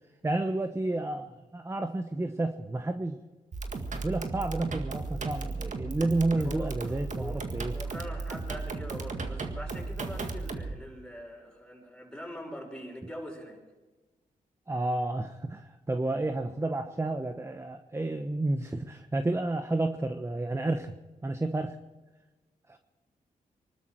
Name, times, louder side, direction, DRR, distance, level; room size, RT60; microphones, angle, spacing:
voice 1, 0.2-3.2 4.0-7.7 14.7-20.9 21.2-21.8 22.7-22.8, right 2 dB, 15° right, 7 dB, 1.0 m, -31 dB
sound 1, 3.5-10.7, right 3 dB, 55° right, 2.0 m, -35 dB
voice 2, 6.4-13.6, equal, 5° left, 0 dB, 6.0 m, -43 dB
24.5 x 12.5 x 4.6 m, 1.2 s
cardioid pair, 70°, 15 cm